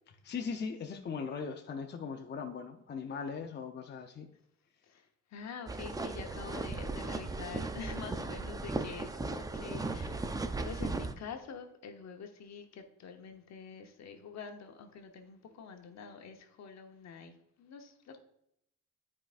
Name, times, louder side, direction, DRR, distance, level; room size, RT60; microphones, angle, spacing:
voice 1, 0.2-4.3, left 5 dB, 35° left, 4 dB, 0.6 m, -39 dB
voice 2, 4.8-10.2 10.6-18.2, left 6 dB, 60° left, 5 dB, 1.0 m, -46 dB
sound 1, 5.7-11.1, right 3 dB, 10° right, 0.5 m, -37 dB
8.7 x 4.8 x 2.5 m, 0.79 s
cardioid pair, 90°, 30 cm